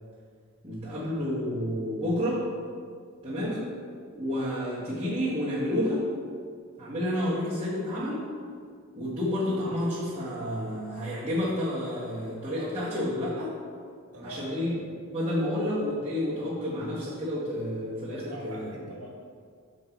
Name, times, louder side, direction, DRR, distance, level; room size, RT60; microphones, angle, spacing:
voice 1, 0.6-2.5 3.2-3.7 4.1-6.1 6.8-8.2 8.9-13.5 14.2-14.7 15.1-18.7, left 1 dB, 25° right, -11 dB, 1.4 m, -30 dB
voice 2, 14.1-14.5 18.3-19.1, right 1 dB, 80° right, -2 dB, 1.6 m, -43 dB
7.4 x 4.1 x 4.5 m, 2.1 s
head